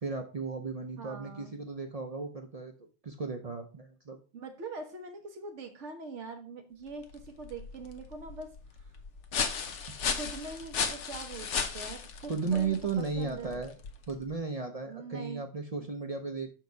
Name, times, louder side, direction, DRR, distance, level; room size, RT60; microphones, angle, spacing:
voice 1, 0.0-2.7 3.0-4.2 12.3-13.7 14.1-16.5, right 5 dB, 40° right, 4 dB, 0.6 m, -35 dB
voice 2, 1.0-1.6 4.3-8.5 8.8-8.9 10.1-13.6 14.9-15.4, right 3 dB, 85° right, 5 dB, 1.4 m, -43 dB
sound 1, 6.9-14.3, left 6 dB, 90° left, 1.2 m, -36 dB
6.4 x 4.7 x 4.6 m, 0.36 s
omnidirectional pair, 1.2 m